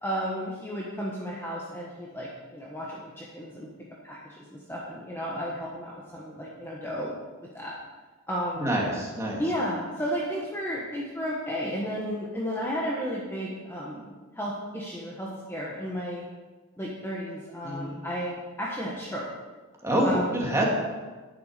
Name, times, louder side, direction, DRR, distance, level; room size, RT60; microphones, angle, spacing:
voice 1, 0.0-3.7 4.0-7.1 7.5-7.7 8.3-8.7 9.4-16.2 16.8-19.3 20.0-20.4, equal, 10° left, -4 dB, 1.4 m, -33 dB
voice 2, 8.6-9.4 17.6-18.0 19.8-20.6, right 1 dB, 15° right, -3 dB, 2.5 m, -26 dB
10.5 x 10.5 x 5.2 m, 1.3 s
head